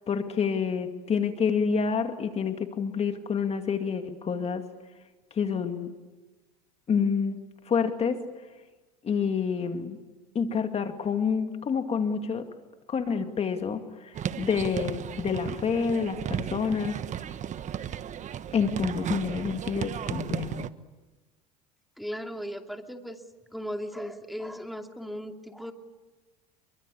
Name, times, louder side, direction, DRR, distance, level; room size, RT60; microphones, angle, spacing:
voice 1, 0.1-4.7 5.3-5.9 6.9-8.3 9.0-10.0 10.3-12.5 12.9-17.0 17.3-17.4 18.5-20.6, left 6 dB, 30° left, 6 dB, 2.3 m, -28 dB
sound 1, 14.1-20.7, right 9 dB, 40° right, 1.3 m, -34 dB
voice 2, 22.0-23.2 23.5-25.7, equal, ahead, 4 dB, 2.6 m, -37 dB
29.0 x 24.0 x 8.6 m, 1.2 s
supercardioid pair, 100°, 19 cm